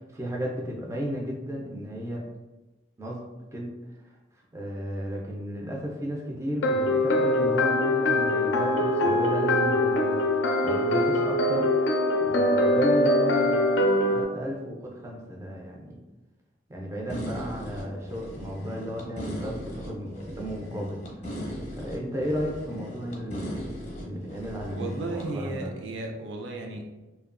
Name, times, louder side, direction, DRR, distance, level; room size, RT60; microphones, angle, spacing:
voice 1, 0.1-2.2 3.0-3.7 4.5-16.0 16.7-21.0 21.8-23.7 24.0-25.7, equal, 15° right, -2 dB, 0.4 m, -34 dB
sound 1, 6.6-14.2, left 1 dB, 75° left, 0.4 m, -23 dB
sound 2, 17.1-25.3, equal, 35° left, 0.6 m, -38 dB
voice 2, 24.7-26.8, right 2 dB, 90° right, 2 dB, 0.5 m, -34 dB
2.7 x 2.2 x 2.4 m, 1.1 s
head